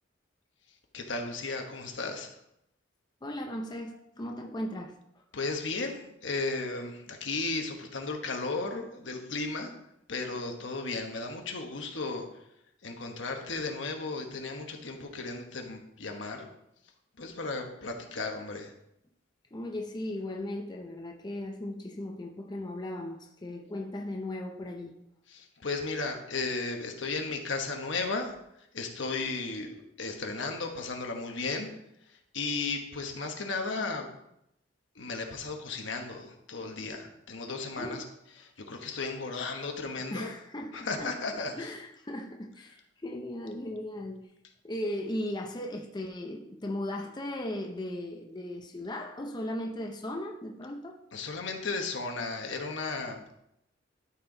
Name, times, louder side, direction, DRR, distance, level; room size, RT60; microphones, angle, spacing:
voice 1, 0.9-2.3 5.3-9.7 10.1-12.3 12.8-16.5 17.2-18.7 25.3-28.3 28.7-31.7 32.3-34.1 34.9-38.0 38.7-40.3 40.7-41.7 51.1-53.3, left 3 dB, 70° left, 1.2 m, -35 dB
voice 2, 3.2-5.0 19.5-25.0 37.7-38.0 40.1-41.2 41.6-44.3 44.6-51.0, left 1 dB, 20° left, 0.6 m, -37 dB
12.5 x 4.5 x 3.9 m
head